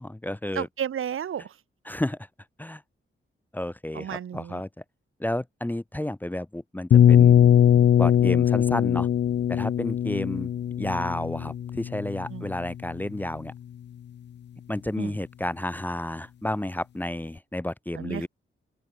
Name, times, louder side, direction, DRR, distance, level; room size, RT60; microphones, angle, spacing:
voice 1, 0.0-0.7 1.9-2.2 2.6-2.8 3.5-4.7 5.2-7.4 8.0-9.1 9.5-10.5 10.8-13.5 14.7-18.3, left 1 dB, 10° left, 0.8 m, -31 dB
voice 2, 0.5-1.5 3.9-4.6 12.3-12.5 15.0-15.2 17.9-18.3, right 9 dB, 75° right, 1.1 m, -33 dB
sound 1, 6.9-12.7, left 9 dB, 55° left, 0.5 m, -20 dB
open air
wide cardioid pair, 180°, 21 cm